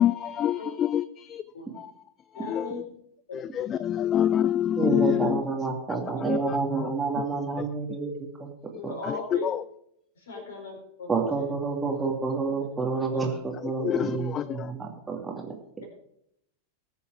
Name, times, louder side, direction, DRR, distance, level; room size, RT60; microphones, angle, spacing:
voice 1, 0.0-1.4 1.7-1.9 2.3-2.8 3.3-5.4 6.2-7.2 7.6-7.7 9.0-9.6 10.4-10.5 13.6-14.7, left 10 dB, 30° left, 16 dB, 0.4 m, -27 dB
voice 2, 2.3-2.8 3.3-3.4 6.2-6.3 8.8-9.5 10.2-11.3 13.1-13.2 13.8-13.9, left 1 dB, 65° left, 1 dB, 4.7 m, -38 dB
voice 3, 4.8-8.5 8.8-8.9 11.1-15.8, right 4 dB, 10° right, 1 dB, 2.4 m, -29 dB
19.5 x 7.0 x 4.8 m, 0.74 s
figure-of-eight pair, 90°, 0 cm